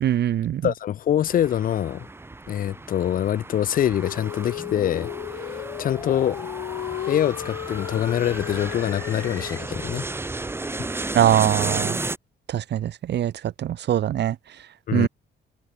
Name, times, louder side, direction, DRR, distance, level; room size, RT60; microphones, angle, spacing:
voice 1, 0.0-0.7 11.1-12.0 12.5-14.7 14.9-15.1, right 11 dB, 60° right, 0.7 m, -22 dB
voice 2, 0.6-2.1 2.5-5.1 5.4-6.4 7.1-10.0 14.9-15.1, left 10 dB, 45° left, 0.4 m, -24 dB
sound 1, 1.2-12.2, right 2 dB, 10° right, 0.7 m, -34 dB
Female singing, 4.0-9.7, left 14 dB, 80° left, 3.4 m, -35 dB
sound 2, 4.6-9.6, left 2 dB, 15° left, 0.9 m, -40 dB
cardioid pair, 90°, 20 cm